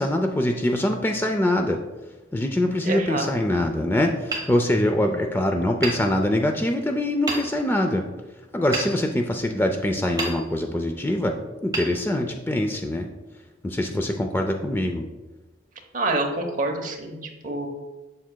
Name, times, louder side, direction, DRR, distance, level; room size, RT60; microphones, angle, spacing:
voice 1, 0.0-1.8 2.3-8.0 8.5-11.4 11.6-13.1 13.6-15.0, left 1 dB, 10° left, 4 dB, 0.4 m, -23 dB
voice 2, 2.8-3.3 15.9-17.7, right 2 dB, 45° right, 3 dB, 0.9 m, -27 dB
Hammer, 4.3-5.3 5.8-6.7 7.3-7.9 8.7-9.7 10.2-10.9 11.7-12.7, right 2 dB, 25° right, 1.3 m, -33 dB
7.4 x 6.6 x 2.2 m, 1.1 s
head